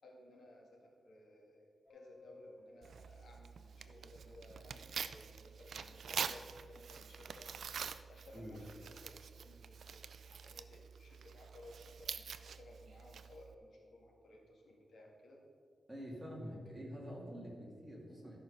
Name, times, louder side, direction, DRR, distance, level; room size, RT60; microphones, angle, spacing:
voice 1, 0.0-7.5 8.1-15.4, left 1 dB, 75° left, 0 dB, 1.9 m, -59 dB
Subway metro underground, 1.9-4.0 4.3-4.4 4.7-4.9 5.2-5.6 5.9-6.9, left 2 dB, 45° left, 1.2 m, -60 dB
Tearing, 2.8-13.5, right 6 dB, 70° right, 0.4 m, -46 dB
voice 2, 15.9-18.4, equal, 10° right, -3 dB, 2.2 m, -47 dB
13.0 x 5.6 x 5.5 m, 2.2 s
wide cardioid pair, 140°, 0 cm